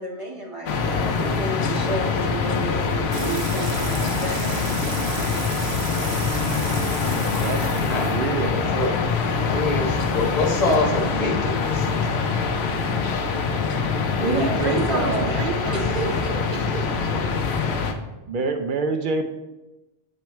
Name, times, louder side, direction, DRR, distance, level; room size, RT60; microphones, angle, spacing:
voice 1, 0.0-4.4 14.2-16.7, right 2 dB, 30° right, -2 dB, 1.3 m, -30 dB
sound 1, 0.7-17.9, left 5 dB, 80° left, 0.9 m, -24 dB
sound 2, 3.1-8.9, right 5 dB, 85° right, 1.0 m, -36 dB
voice 2, 7.0-8.8 9.6-9.7 14.1-16.1 16.7-16.9 18.3-19.3, right 4 dB, 60° right, 6 dB, 0.6 m, -27 dB
voice 3, 9.4-12.2, left 2 dB, 40° left, -3 dB, 1.2 m, -25 dB
7.6 x 4.5 x 3.1 m, 1.0 s
omnidirectional pair, 1.1 m